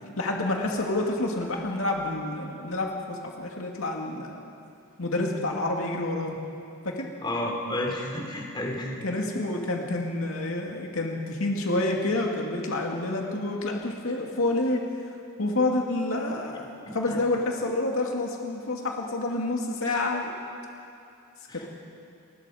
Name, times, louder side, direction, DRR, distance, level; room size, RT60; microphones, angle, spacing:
voice 1, 0.2-4.4 5.0-6.4 6.8-7.1 9.0-15.1 15.4-16.7 16.9-20.3, left 2 dB, 75° left, 0 dB, 2.3 m, -28 dB
voice 2, 7.2-9.0 16.8-17.2 21.5-21.7, left 1 dB, 20° left, 0 dB, 3.2 m, -31 dB
29.5 x 21.0 x 5.0 m, 2.6 s
head